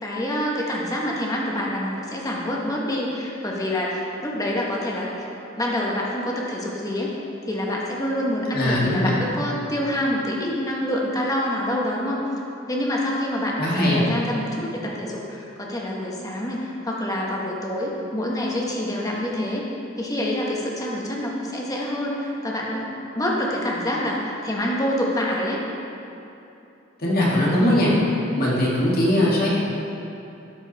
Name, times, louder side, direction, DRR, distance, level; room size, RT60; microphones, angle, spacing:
voice 1, 0.0-5.2 5.6-7.1 7.5-12.2 12.7-19.7 20.0-22.9 23.1-25.6, left 1 dB, 20° left, -3 dB, 1.2 m, -26 dB
voice 2, 8.5-9.1 13.6-14.0 27.0-27.9 28.4-29.5, left 1 dB, 50° left, -6 dB, 2.0 m, -20 dB
12.5 x 4.9 x 4.1 m, 2.8 s
head